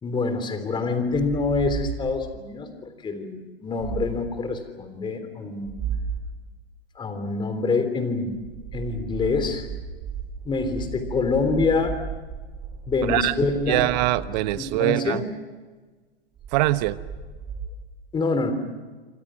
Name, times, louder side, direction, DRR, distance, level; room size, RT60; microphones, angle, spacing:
voice 1, 0.0-5.7 7.0-8.3 8.7-9.7 10.5-12.0 12.9-13.9 14.5-15.2 18.1-18.5, left 4 dB, 15° left, 8 dB, 3.4 m, -26 dB
sound 1, 1.1-2.4 3.8-4.4 5.6-6.4 8.2-15.0 16.4-17.7, right 6 dB, 25° right, 4.9 m, -35 dB
voice 2, 13.7-15.2 16.5-17.0, right 18 dB, 45° right, 14 dB, 1.1 m, -23 dB
29.0 x 25.0 x 6.3 m, 1.3 s
hypercardioid pair, 120°, 31 cm